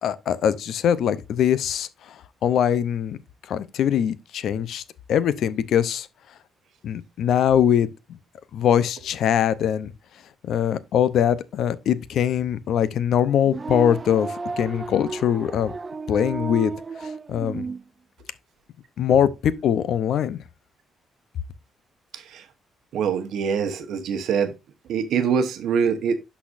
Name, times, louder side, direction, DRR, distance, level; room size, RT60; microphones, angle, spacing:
voice 1, 0.0-3.2 3.5-4.8 5.1-6.1 6.8-8.2 8.5-9.9 10.4-15.7 16.1-16.7 17.0-17.6 19.0-20.4, left 9 dB, 70° left, 0.6 m, -22 dB
sound 1, 13.4-17.8, right 4 dB, 30° right, 0.4 m, -33 dB
voice 2, 22.9-24.5 24.9-26.2, right 6 dB, 75° right, 1.0 m, -24 dB
11.5 x 4.2 x 2.5 m
cardioid pair, 90°, 0 cm